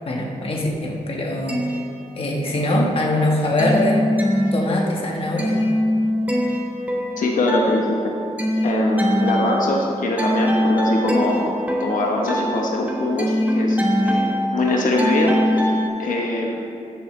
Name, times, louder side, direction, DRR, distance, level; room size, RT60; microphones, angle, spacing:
voice 1, 0.1-1.6 2.2-4.0 4.5-5.6, left 1 dB, 45° left, -1 dB, 1.4 m, -22 dB
sound 1, 1.3-2.7 3.0-15.9, equal, 10° right, 1.3 m, -23 dB
voice 2, 7.2-8.1 8.6-13.8 14.0-15.7 16.0-16.6, left 2 dB, 90° left, -1 dB, 1.1 m, -23 dB
14.5 x 7.1 x 3.2 m, 2.7 s
wide cardioid pair, 135°, 13 cm